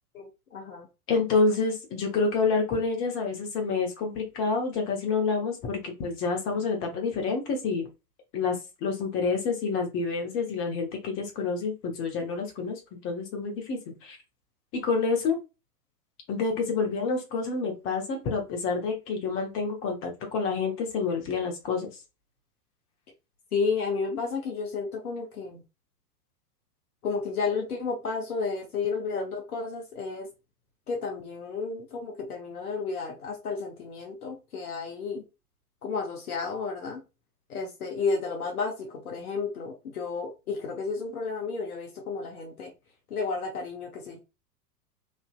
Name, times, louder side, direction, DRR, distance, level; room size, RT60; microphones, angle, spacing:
voice 1, 0.1-0.9 23.5-25.6 27.0-30.3 30.9-35.2 35.8-37.0 37.5-42.7 43.1-44.2, left 4 dB, 65° left, 1 dB, 0.9 m, -32 dB
voice 2, 1.1-7.9 8.3-14.2 14.7-15.4 16.3-21.9, left 4 dB, 25° left, 2 dB, 0.9 m, -28 dB
3.2 x 2.6 x 2.3 m, 0.27 s
figure-of-eight pair, 95°, 48 cm